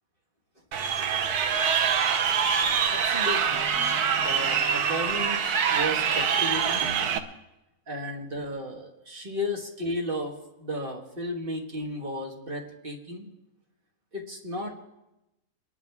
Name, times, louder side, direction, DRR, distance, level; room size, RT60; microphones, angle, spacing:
Crowd, 0.7-7.2, right 7 dB, 80° right, 1.4 m, -25 dB
voice 1, 2.9-3.6 4.2-7.2 7.9-10.3 10.6-13.3 14.1-14.7, equal, 35° right, 1 dB, 1.9 m, -34 dB
23.5 x 11.5 x 3.5 m, 0.93 s
omnidirectional pair, 1.6 m